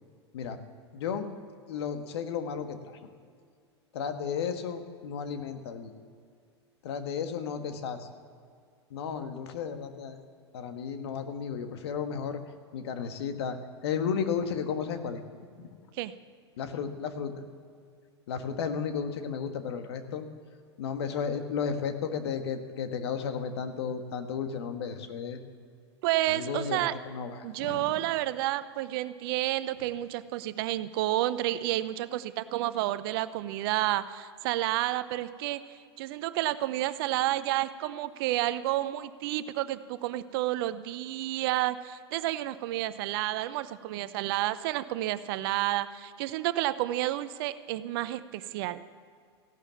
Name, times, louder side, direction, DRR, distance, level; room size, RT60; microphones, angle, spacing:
voice 1, 0.9-1.4 1.7-3.0 3.9-5.9 6.8-8.1 8.9-10.2 10.5-12.4 12.7-13.6 13.8-15.2 15.6-15.7 16.6-17.5 18.3-20.3 20.8-25.4 26.3-27.9, left 6 dB, 65° left, 7 dB, 1.5 m, -33 dB
voice 2, 26.0-26.9 27.4-35.6 36.0-48.8, right 15 dB, 55° right, 14 dB, 0.7 m, -30 dB
15.5 x 12.0 x 7.2 m, 2.2 s
hypercardioid pair, 95°, 15 cm